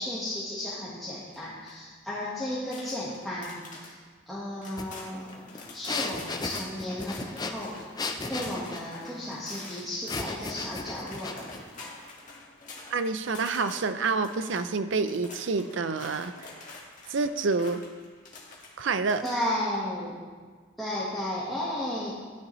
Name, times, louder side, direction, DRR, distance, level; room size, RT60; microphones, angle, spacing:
voice 1, 0.0-4.0 4.3-5.4 5.7-11.5 19.2-20.2 20.8-22.1, left 1 dB, ahead, -10 dB, 1.4 m, -34 dB
sound 1, 1.3-1.7 2.5-3.9 4.3-4.4 4.6-18.7 19.0-19.5, left 3 dB, 40° left, 1.7 m, -46 dB
sound 2, 4.8-4.9 5.2-8.9 10.1-11.6, left 3 dB, 20° left, 0.5 m, -35 dB
voice 2, 12.9-16.5 17.1-17.8 18.8-19.2, right 4 dB, 65° right, 11 dB, 0.5 m, -28 dB
11.0 x 10.0 x 3.1 m, 1.5 s
head